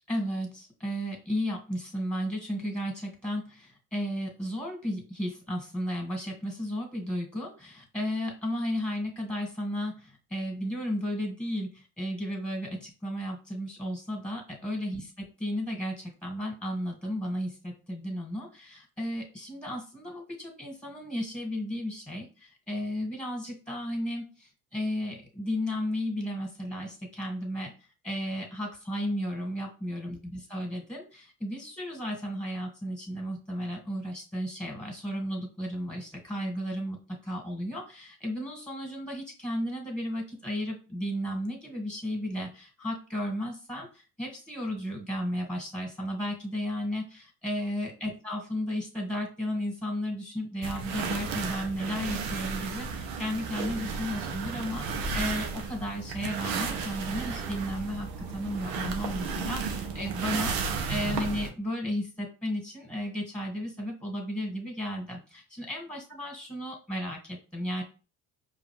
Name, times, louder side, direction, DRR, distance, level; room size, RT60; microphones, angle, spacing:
voice 1, 0.1-27.7 28.0-37.0 37.2-67.8, equal, 5° left, 0 dB, 2.0 m, -34 dB
sound 1, 50.6-61.5, right 5 dB, 80° right, 0.8 m, -33 dB
5.0 x 2.6 x 3.2 m, 0.34 s
supercardioid pair, 70°, 36 cm